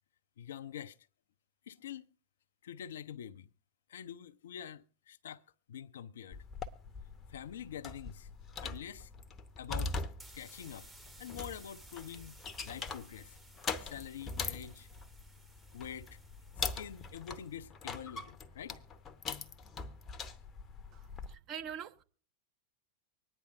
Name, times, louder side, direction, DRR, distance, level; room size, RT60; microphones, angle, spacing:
voice 1, 0.4-1.0 1.7-2.1 2.6-3.5 3.9-5.4 5.7-6.4 7.3-8.3 8.6-9.1 9.6-10.0 10.3-10.9 11.2-12.4 12.6-13.4 13.8-14.9 15.7-16.2 16.6-18.8, left 9 dB, 60° left, 0.5 m, -46 dB
sound 1, 6.3-21.4, left 4 dB, 25° left, 0.7 m, -42 dB
sound 2, 10.2-17.6, right 2 dB, 10° right, 1.0 m, -59 dB
voice 2, 20.9-22.0, right 8 dB, 35° right, 0.9 m, -44 dB
24.5 x 9.8 x 2.6 m
figure-of-eight pair, 90°, 0 cm